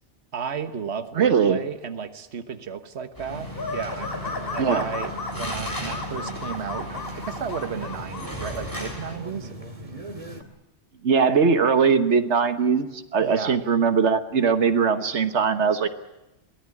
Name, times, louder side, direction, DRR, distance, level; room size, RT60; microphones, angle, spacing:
voice 1, 0.3-9.5 13.2-13.6, right 7 dB, 75° right, 10 dB, 1.5 m, -34 dB
voice 2, 1.2-1.6 4.6-4.9 11.0-12.9 13.1-15.9, right 6 dB, 90° right, 10 dB, 1.6 m, -20 dB
sound 1, 3.1-9.2, equal, 15° left, 7.7 m, -38 dB
sound 2, 3.3-10.4, equal, 30° right, 2.4 m, -39 dB
sound 3, 3.5-8.3, left 3 dB, 55° left, 3.4 m, -34 dB
23.5 x 18.0 x 9.8 m, 0.96 s
omnidirectional pair, 1.1 m